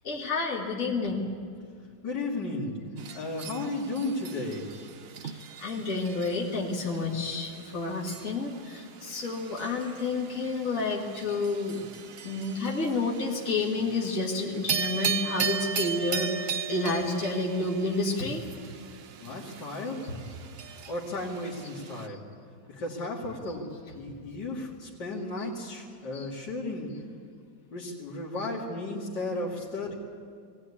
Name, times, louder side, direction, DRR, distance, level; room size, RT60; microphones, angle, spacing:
voice 1, 0.0-1.3 5.2-11.8 12.2-18.4 20.0-20.2 23.5-23.6 23.9-24.0 25.4-25.5 26.1-26.3 28.4-28.5, left 3 dB, 50° left, -2 dB, 2.5 m, -30 dB
voice 2, 2.0-2.7 3.1-4.7 19.2-20.0 20.9-22.2 22.7-23.7 23.9-26.9 27.7-29.9, left 2 dB, 75° left, -6 dB, 3.1 m, -34 dB
sound 1, 2.9-22.1, right 7 dB, 60° right, 0.6 m, -38 dB
21.0 x 16.5 x 9.8 m, 2.2 s
omnidirectional pair, 1.9 m